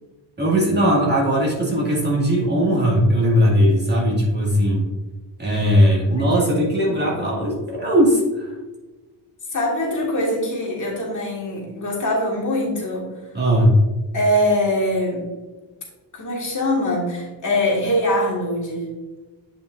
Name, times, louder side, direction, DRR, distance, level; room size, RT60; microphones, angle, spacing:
voice 1, 0.4-4.9 5.4-8.6 13.3-13.7, equal, 25° right, -4 dB, 2.0 m, -18 dB
voice 2, 6.1-7.2 9.5-13.1 14.1-15.3 16.1-19.0, left 1 dB, 45° left, -3 dB, 1.9 m, -23 dB
8.6 x 5.5 x 2.5 m, 1.2 s
wide cardioid pair, 150°, 43 cm